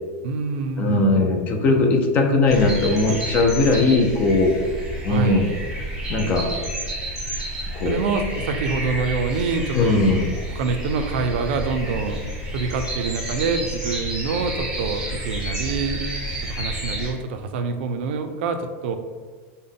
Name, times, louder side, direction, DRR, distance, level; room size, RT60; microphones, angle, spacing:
voice 1, 0.2-1.4 5.1-5.5 7.8-12.2 12.5-16.0 16.4-19.0, right 4 dB, 55° right, 6 dB, 0.3 m, -26 dB
voice 2, 0.8-4.7 5.0-5.5 6.1-6.6 7.7-8.1 9.7-10.3, left 2 dB, 20° left, 3 dB, 0.3 m, -19 dB
sound 1, 2.5-17.1, right 1 dB, 10° right, 0.8 m, -30 dB
3.7 x 2.1 x 3.5 m, 1.5 s
supercardioid pair, 175°, 7 cm